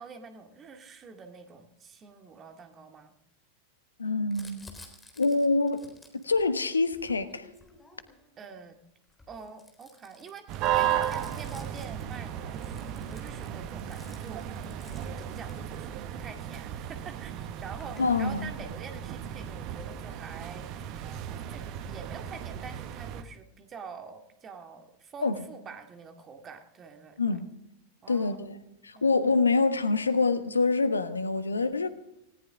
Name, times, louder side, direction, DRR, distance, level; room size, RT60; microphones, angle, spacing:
voice 1, 0.0-3.2 4.5-4.6 8.4-8.8 9.3-14.4 15.2-17.3 17.6-27.4 28.0-28.5 28.9-29.3, right 5 dB, 25° right, 2.2 m, -46 dB
voice 2, 4.0-4.7 5.2-5.8 6.2-7.5 18.0-18.5 25.2-25.3 27.2-27.5 28.1-31.9, left 3 dB, 75° left, 1.3 m, -26 dB
Crumpling crinkling, 4.3-8.3 9.0-16.1 17.0-17.1 17.2-18.8, left 2 dB, 10° left, 3.9 m, -54 dB
sound 1, 10.5-23.2, right 10 dB, 40° right, 1.2 m, -35 dB
19.0 x 18.0 x 3.7 m
figure-of-eight pair, 90°, 0 cm